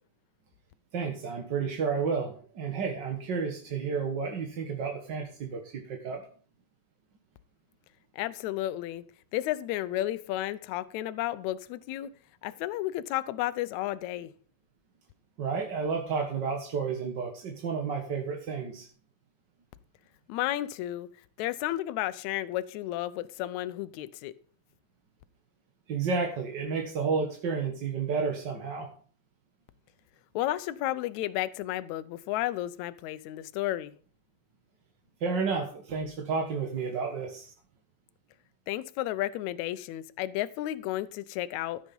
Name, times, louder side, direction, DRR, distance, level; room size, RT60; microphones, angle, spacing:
voice 1, 0.9-6.2 15.4-18.9 25.9-28.9 35.2-37.5, right 5 dB, 45° right, 1.5 m, -31 dB
voice 2, 8.1-9.0 9.3-12.1 12.4-14.3 20.3-21.1 21.4-24.3 30.4-33.9 38.7-41.8, left 14 dB, 75° left, 1.9 m, -32 dB
14.0 x 7.5 x 5.4 m
omnidirectional pair, 3.7 m